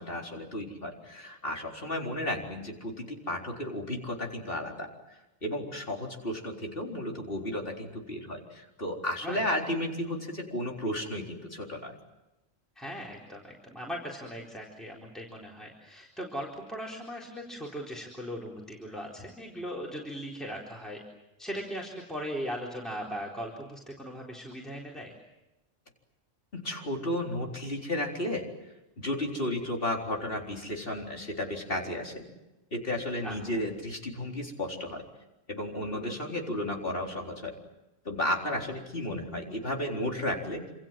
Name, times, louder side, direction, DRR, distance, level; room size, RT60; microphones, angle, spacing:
voice 1, 0.0-12.0 26.5-28.4 29.0-32.3 32.7-35.0 35.5-37.5 38.0-40.6, left 1 dB, 45° left, 1 dB, 4.3 m, -33 dB
voice 2, 12.8-21.0 21.4-25.1 33.2-33.6, equal, ahead, -3 dB, 4.1 m, -39 dB
27.5 x 27.5 x 7.6 m, 0.97 s
omnidirectional pair, 1.3 m